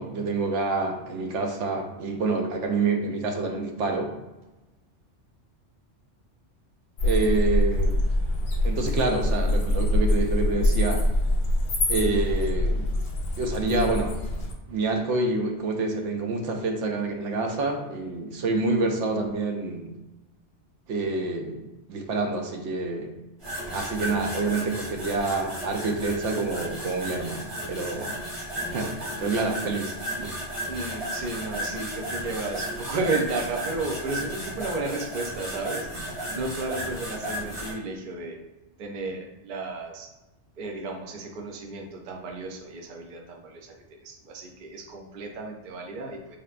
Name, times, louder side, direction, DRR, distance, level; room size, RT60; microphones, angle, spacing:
voice 1, 0.0-4.1 7.0-8.0 8.6-11.0 11.9-12.9 13.4-14.2 14.7-19.9 20.9-23.1 23.7-28.2 28.5-29.9 30.2-30.4, right 3 dB, 90° right, 3 dB, 0.9 m, -27 dB
sound 1, 7.0-14.5, left 1 dB, 55° left, 0.7 m, -24 dB
sound 2, 23.4-37.7, equal, 35° right, 1.1 m, -34 dB
voice 2, 30.7-38.4 38.8-40.1 40.6-43.7 44.0-46.4, right 3 dB, 55° right, 2 dB, 0.6 m, -33 dB
3.3 x 2.8 x 2.4 m, 1.0 s
omnidirectional pair, 1.2 m